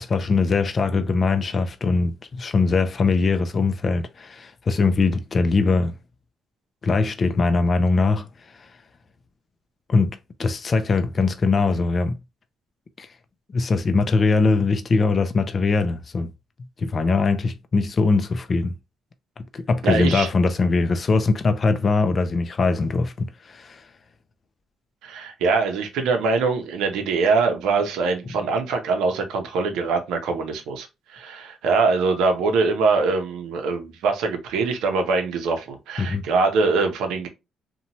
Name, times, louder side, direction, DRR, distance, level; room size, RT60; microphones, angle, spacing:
voice 1, 0.0-6.0 6.8-8.3 9.9-12.2 13.0-13.1 13.5-16.3 16.8-18.7 19.5-23.8 36.0-36.2, left 4 dB, 40° left, 0.3 m, -21 dB
voice 2, 19.8-20.3 25.0-30.9 31.1-37.3, right 4 dB, 90° right, 0.6 m, -23 dB
2.8 x 2.2 x 2.7 m
cardioid pair, 90°, 0 cm